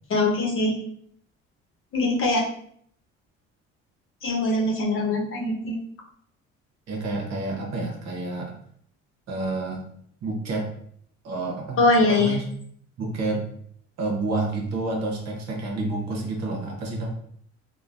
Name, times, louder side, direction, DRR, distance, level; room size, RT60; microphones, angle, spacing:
voice 1, 0.1-0.8 1.9-2.4 4.2-5.8 11.8-12.4, left 2 dB, 45° left, -1 dB, 0.8 m, -22 dB
voice 2, 6.9-8.5 9.3-9.9 10.2-10.7 11.2-12.5 13.0-13.4 14.0-17.1, right 2 dB, 60° right, 0 dB, 0.9 m, -29 dB
3.1 x 2.2 x 2.5 m, 0.64 s
supercardioid pair, 85°, 30 cm